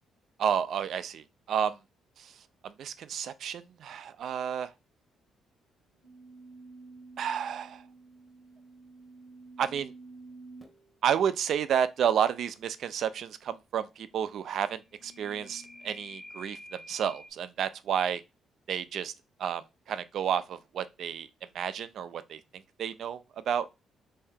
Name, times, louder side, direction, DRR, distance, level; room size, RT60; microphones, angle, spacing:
voice 1, 0.4-1.8 2.2-4.7 7.2-7.9 9.6-9.9 11.0-18.2 18.7-19.1 19.4-21.3 21.5-23.8, right 8 dB, 65° right, 0.3 m, -31 dB
sound 1, 6.0-10.9 14.7-17.3, right 1 dB, 5° left, 0.9 m, -50 dB
3.3 x 2.7 x 3.6 m
cardioid pair, 90°, 0 cm